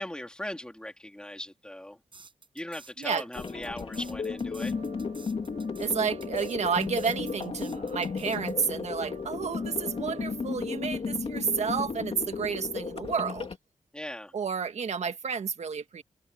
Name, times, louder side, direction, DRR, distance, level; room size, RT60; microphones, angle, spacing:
voice 1, 0.0-2.0 2.5-4.7 13.9-14.3, left 1 dB, 5° left, 4.1 m, -39 dB
sound 1, 2.1-8.7, right 4 dB, 45° right, 6.5 m, -52 dB
sound 2, 3.3-13.6, left 5 dB, 50° left, 3.1 m, -34 dB
sound 3, 3.9-10.5, right 7 dB, 80° right, 3.0 m, -50 dB
voice 2, 5.8-13.5 14.3-16.0, right 6 dB, 65° right, 1.8 m, -31 dB
open air
wide cardioid pair, 115°, 12 cm